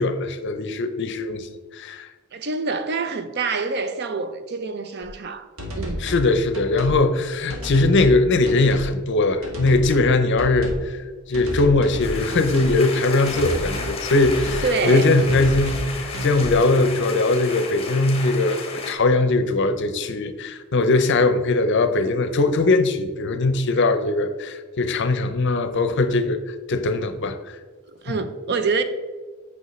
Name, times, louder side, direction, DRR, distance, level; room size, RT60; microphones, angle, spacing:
voice 1, 0.0-2.1 6.0-11.0 11.3-26.4 26.7-27.6 28.1-28.2, left 2 dB, 60° left, 0.6 m, -20 dB
voice 2, 2.3-6.1 14.6-15.1 23.8-23.9 28.0-28.8, right 4 dB, 55° right, 0.5 m, -26 dB
sound 1, 5.0-5.1 5.6-6.3 6.5-7.0 7.5-8.2 8.5-8.9 9.4-10.1 10.4-10.9 11.3-12.8 13.3-13.9 14.2-14.7 15.2-15.9 16.1-16.6, equal, 75° right, 1.5 m, -31 dB
sound 2, 12.0-18.9, left 4 dB, 30° left, 1.0 m, -33 dB
8.2 x 5.3 x 3.2 m
head